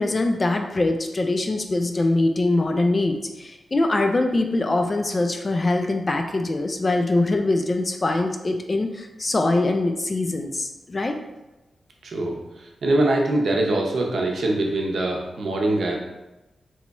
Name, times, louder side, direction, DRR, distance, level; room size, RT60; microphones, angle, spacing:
voice 1, 0.0-11.2, left 2 dB, 30° left, 5 dB, 0.3 m, -23 dB
voice 2, 12.0-16.0, right 2 dB, 70° right, 0 dB, 0.6 m, -23 dB
3.0 x 2.3 x 4.0 m, 1.0 s
wide cardioid pair, 135°, 0 cm